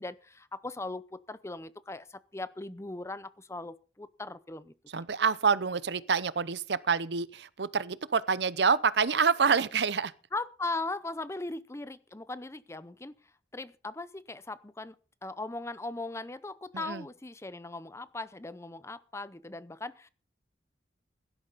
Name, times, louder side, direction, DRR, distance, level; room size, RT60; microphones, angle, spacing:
voice 1, 0.0-4.7 10.3-13.2 13.5-15.0 15.2-20.1, left 2 dB, 15° left, 0.7 m, -39 dB
voice 2, 4.9-10.1 16.7-17.0, right 5 dB, 70° right, 0.7 m, -27 dB
16.5 x 12.0 x 4.1 m
head